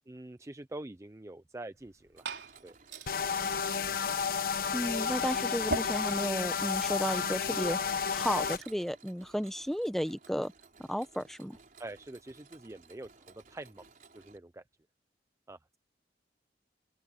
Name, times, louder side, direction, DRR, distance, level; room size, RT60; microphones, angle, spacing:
voice 1, 0.1-2.3 2.6-2.8 3.3-3.4 11.8-13.8 14.1-14.6 15.5-15.8, right 2 dB, 15° right, 0.5 m, -45 dB
Liquid, 1.7-8.8, right 3 dB, 90° right, 3.9 m, -44 dB
Mechanisms, 2.2-14.4, right 4 dB, 50° right, 4.1 m, -58 dB
sound 1, 3.1-8.6, left 6 dB, 55° left, 1.0 m, -31 dB
voice 2, 4.7-10.5 10.9-11.6, equal, ahead, 0.9 m, -33 dB
open air
head